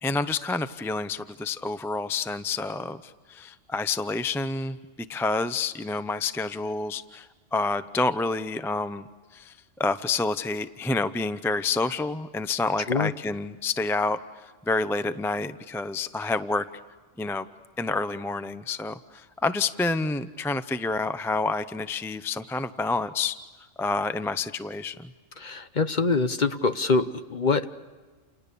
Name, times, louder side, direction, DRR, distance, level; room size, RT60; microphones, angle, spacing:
voice 1, 0.0-4.8 5.1-9.1 9.3-9.5 9.8-16.6 17.2-17.5 17.8-23.3 23.8-25.1, left 3 dB, 5° left, 11 dB, 0.5 m, -28 dB
voice 2, 25.4-27.8, left 4 dB, 40° left, 10 dB, 1.0 m, -25 dB
29.5 x 29.5 x 6.9 m, 1.4 s
omnidirectional pair, 1.3 m